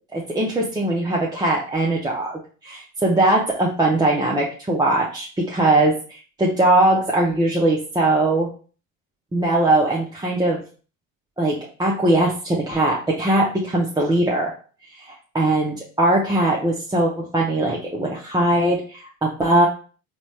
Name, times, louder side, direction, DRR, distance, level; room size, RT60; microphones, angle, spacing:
voice 1, 0.1-8.5 9.3-10.6 11.4-14.5 15.0-19.7, right 2 dB, 10° right, -4 dB, 0.6 m, -20 dB
4.0 x 2.3 x 3.2 m, 0.40 s
hypercardioid pair, 75°, 41 cm